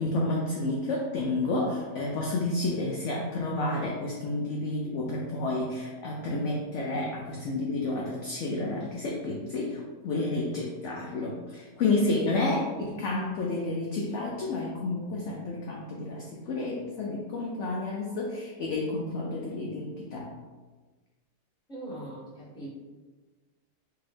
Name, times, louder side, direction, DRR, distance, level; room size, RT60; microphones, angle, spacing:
voice 1, 0.0-20.3, left 2 dB, 75° left, -2 dB, 0.6 m, -30 dB
voice 2, 12.6-13.0 21.7-22.7, right 1 dB, 5° left, -9 dB, 0.8 m, -41 dB
3.4 x 2.5 x 3.3 m, 1.3 s
omnidirectional pair, 1.7 m